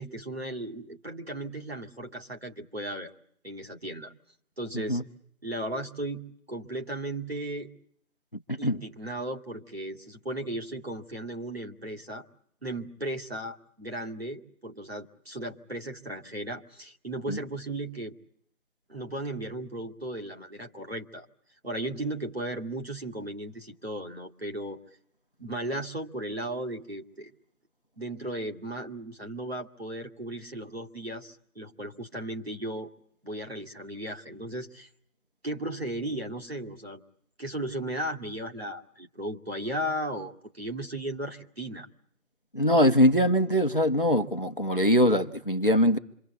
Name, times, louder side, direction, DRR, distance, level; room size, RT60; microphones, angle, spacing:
voice 1, 0.0-3.1 3.4-4.1 4.6-5.0 5.4-7.7 8.6-12.2 12.6-18.2 18.9-21.3 21.6-24.8 25.4-27.3 28.0-32.9 33.2-34.9 35.4-37.0 37.4-41.9, right 1 dB, 45° right, 2.5 m, -36 dB
voice 2, 42.5-46.0, equal, 40° left, 1.1 m, -22 dB
27.0 x 25.0 x 8.2 m
figure-of-eight pair, 175°, 42 cm